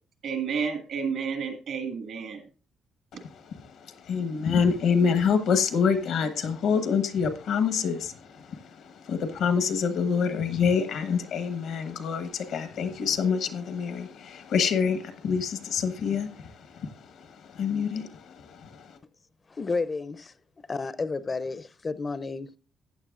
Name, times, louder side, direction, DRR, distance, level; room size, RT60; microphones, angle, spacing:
voice 1, 0.2-2.4, right 6 dB, 75° right, 1.9 m, -31 dB
voice 2, 3.1-19.0, left 6 dB, 80° left, 1.2 m, -27 dB
voice 3, 19.5-20.3 20.7-22.6, left 4 dB, 30° left, 0.5 m, -31 dB
14.0 x 9.0 x 2.5 m
cardioid pair, 90°, 0 cm